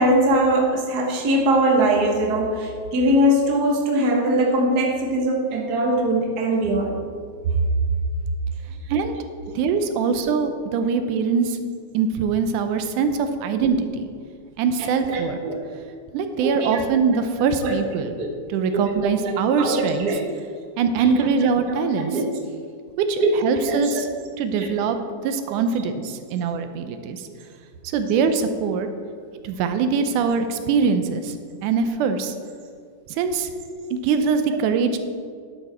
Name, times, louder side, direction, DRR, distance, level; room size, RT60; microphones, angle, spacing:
voice 1, 0.0-6.9 15.1-15.6 16.4-16.8 17.6-17.7 18.2-18.3 18.7-18.8 19.2-20.3 21.7-21.8 22.1-22.2 23.2-23.3 23.6-23.8 24.6-24.7 33.7-33.9, right 1 dB, 50° right, 0 dB, 1.2 m, -21 dB
voice 2, 9.6-11.6 11.9-14.1 14.6-15.4 16.1-18.2 18.5-20.2 20.8-22.2 23.1-24.1 24.4-25.0 25.2-27.2 27.9-28.9 29.4-31.4 31.6-32.3 33.1-33.5 33.9-35.0, right 5 dB, 90° right, 8 dB, 2.2 m, -23 dB
11.0 x 7.0 x 4.3 m, 2.1 s
omnidirectional pair, 3.5 m